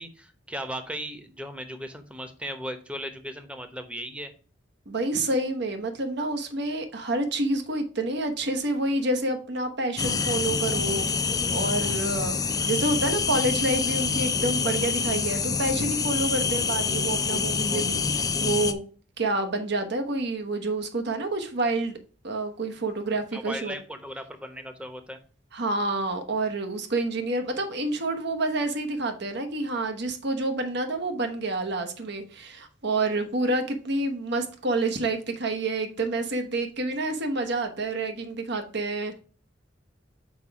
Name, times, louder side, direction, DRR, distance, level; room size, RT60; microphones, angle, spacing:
voice 1, 0.0-4.3 23.3-25.2, equal, 5° right, 0.9 m, -37 dB
voice 2, 4.9-11.1 11.5-12.4 12.7-18.8 19.2-22.0 22.2-23.8 25.5-39.2, right 2 dB, 65° right, 1.1 m, -28 dB
sound 1, 10.0-18.7, left 5 dB, 20° left, 0.4 m, -26 dB
6.0 x 4.6 x 4.7 m
head